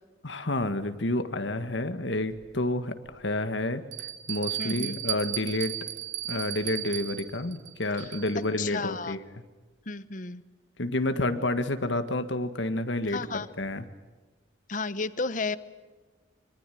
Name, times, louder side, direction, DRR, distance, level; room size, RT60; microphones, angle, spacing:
voice 1, 0.2-5.8 6.3-9.2 10.8-13.8, left 1 dB, 80° left, 10 dB, 1.8 m, -30 dB
Bell, 2.3-2.4 3.1-3.2 3.9-8.5, right 13 dB, 80° right, 2.5 m, -35 dB
voice 2, 4.6-5.0 8.0-8.1 8.6-9.2 9.9-10.4 13.1-13.5 14.7-15.6, left 4 dB, 45° left, 15 dB, 1.0 m, -32 dB
25.5 x 23.5 x 9.3 m, 1.3 s
head